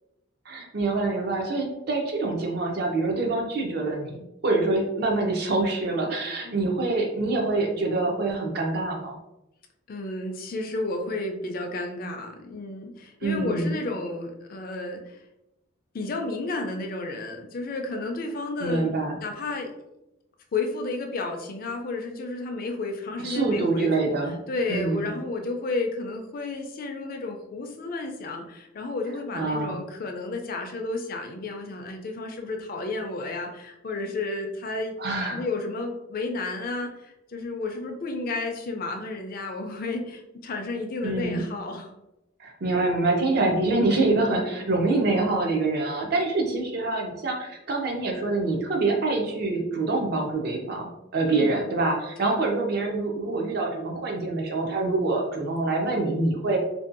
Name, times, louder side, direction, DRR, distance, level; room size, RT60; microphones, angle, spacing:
voice 1, 0.5-9.2 13.2-13.7 18.6-19.2 23.2-24.4 24.7-25.1 29.3-29.8 35.0-35.4 41.0-41.4 42.4-56.6, right 2 dB, 50° right, 1 dB, 0.5 m, -25 dB
voice 2, 9.9-15.2 15.9-18.8 19.2-19.7 20.5-34.9 35.3-41.9 51.3-51.6 52.2-52.4, left 3 dB, 40° left, 3 dB, 0.3 m, -32 dB
2.6 x 2.2 x 2.5 m, 0.90 s
head